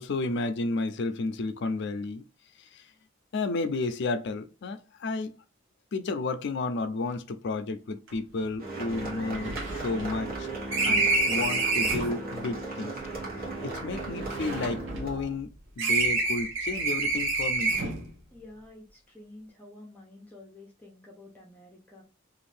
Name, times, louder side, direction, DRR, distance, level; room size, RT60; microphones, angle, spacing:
voice 1, 0.0-2.2 2.7-2.8 3.3-5.4 5.9-10.5 10.8-13.0 13.6-15.5 15.8-17.8, left 3 dB, 60° left, 0.4 m, -32 dB
sound 1, 8.1-8.2 8.4-8.5 8.9-12.2 13.0-15.4 15.8-18.1, right 3 dB, 65° right, 0.8 m, -28 dB
sound 2, 8.6-15.4, right 3 dB, 50° right, 1.3 m, -36 dB
voice 2, 18.3-22.0, left 2 dB, 10° left, 0.7 m, -50 dB
2.6 x 2.5 x 3.3 m
head